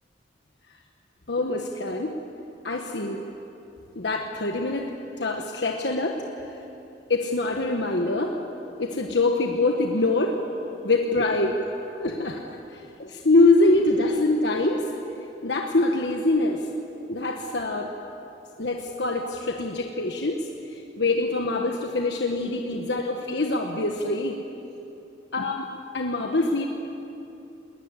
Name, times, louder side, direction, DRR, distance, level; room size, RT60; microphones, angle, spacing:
voice 1, 1.3-2.1 2.6-3.2 3.9-4.9 5.2-6.2 7.1-8.3 8.8-10.4 10.8-11.6 11.9-12.4 12.7-14.9 15.4-16.7 17.1-17.9 18.6-24.4 25.3-25.6 25.9-26.7, left 2 dB, 70° left, 2 dB, 1.4 m, -24 dB
21.0 x 19.0 x 9.7 m, 2.9 s
head